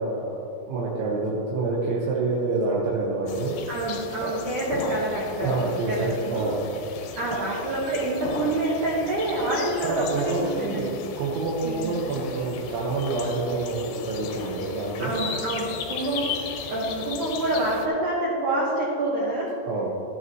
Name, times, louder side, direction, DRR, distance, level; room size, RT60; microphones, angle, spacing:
voice 1, 0.0-3.5 4.2-4.4 5.4-6.8 9.8-15.2 19.7-19.9, right 3 dB, 85° right, -5 dB, 3.5 m, -27 dB
sound 1, 3.3-17.9, left 6 dB, 80° left, 2.9 m, -35 dB
voice 2, 3.7-6.5 7.1-11.1 11.6-12.0 15.0-16.4 16.7-19.5, right 2 dB, 65° right, -5 dB, 2.1 m, -27 dB
14.0 x 9.3 x 3.0 m, 2.6 s
omnidirectional pair, 5.2 m